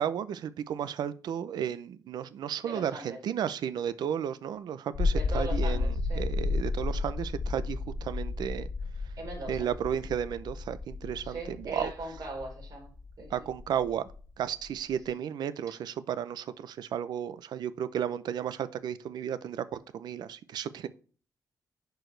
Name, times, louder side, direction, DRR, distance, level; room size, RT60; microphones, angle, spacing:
voice 1, 0.0-8.7 9.5-11.9 13.3-14.1 14.4-20.9, right 9 dB, 90° right, 0.6 m, -33 dB
voice 2, 2.6-3.2 5.1-6.3 9.2-9.7 11.2-12.9 13.2-13.5, right 2 dB, 60° right, 3.9 m, -40 dB
sound 1, 4.9-15.0, left 3 dB, 45° left, 1.0 m, -33 dB
10.5 x 4.6 x 3.3 m
wide cardioid pair, 155°, 7 cm